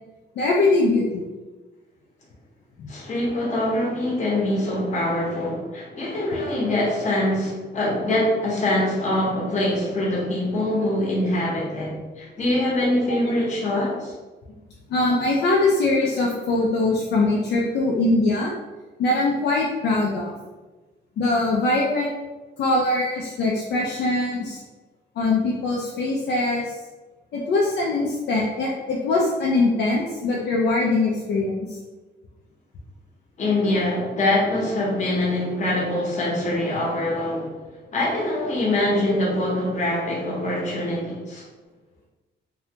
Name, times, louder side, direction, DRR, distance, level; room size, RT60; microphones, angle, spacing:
voice 1, 0.4-1.2 2.8-2.9 13.1-13.2 14.9-18.5 19.0-20.3 21.2-22.1 22.6-24.6 25.2-26.7 27.3-31.8, left 2 dB, 60° left, -3 dB, 0.4 m, -22 dB
voice 2, 2.9-14.1 33.4-37.5 37.9-41.4, left 1 dB, 40° left, -4 dB, 0.8 m, -24 dB
2.7 x 2.1 x 2.7 m, 1.2 s
cardioid pair, 165°, 20 cm